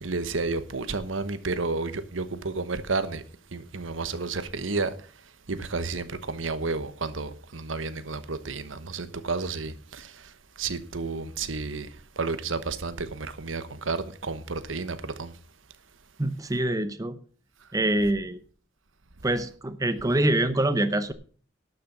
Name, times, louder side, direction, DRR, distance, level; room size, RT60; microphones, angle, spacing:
voice 1, 0.0-3.2 3.5-4.9 5.5-10.1 10.6-11.9 12.2-15.3, right 3 dB, 90° right, 1.1 m, -31 dB
voice 2, 16.2-17.2 17.7-18.4 19.2-21.1, right 1 dB, 20° right, 0.8 m, -25 dB
12.0 x 6.7 x 7.0 m
head